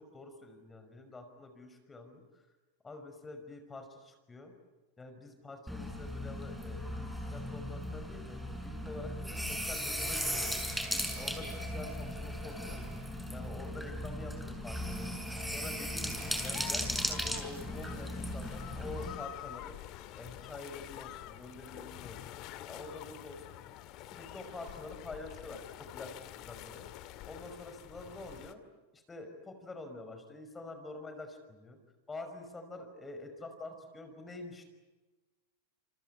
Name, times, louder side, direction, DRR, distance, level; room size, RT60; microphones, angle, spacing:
voice 1, 0.0-2.4 2.8-4.5 5.0-10.6 11.2-12.8 13.3-15.1 15.5-19.8 20.1-23.5 24.0-26.9 27.2-28.6 28.9-31.8 32.1-34.6, left 2 dB, 15° left, 7 dB, 5.6 m, -47 dB
sound 1, 5.7-19.2, equal, ahead, 6.1 m, -37 dB
sound 2, 16.1-28.5, left 14 dB, 50° left, 2.2 m, -47 dB
28.5 x 25.0 x 8.4 m, 1.2 s
hypercardioid pair, 110°, 0 cm